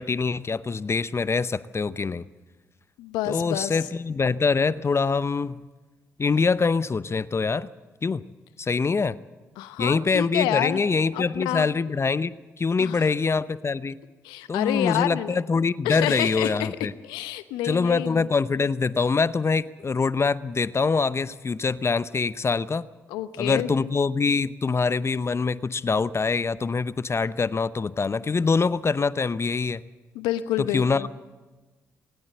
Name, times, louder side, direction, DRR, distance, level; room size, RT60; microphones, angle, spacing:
voice 1, 0.0-2.2 3.2-5.6 6.2-7.7 8.0-8.2 8.6-9.2 9.8-14.0 14.5-16.9 17.6-22.9 23.4-29.8 30.6-31.1, left 4 dB, 35° left, 16 dB, 0.8 m, -24 dB
voice 2, 3.0-3.8 9.6-10.8 11.1-11.7 12.8-13.1 14.2-15.4 15.8-16.7 17.0-18.3 23.1-23.7 30.1-31.1, left 13 dB, 80° left, 13 dB, 0.9 m, -28 dB
19.5 x 19.0 x 7.6 m, 1.2 s
hypercardioid pair, 40°, 8 cm